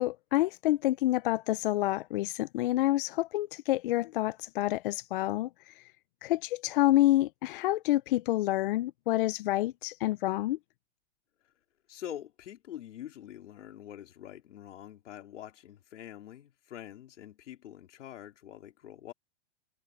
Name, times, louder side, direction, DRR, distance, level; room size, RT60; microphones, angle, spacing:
voice 1, 0.0-5.9 6.2-10.6, left 16 dB, 50° left, 0.4 m, -28 dB
voice 2, 11.9-19.1, left 11 dB, 80° left, 4.0 m, -45 dB
supercardioid pair, 155°, 36 cm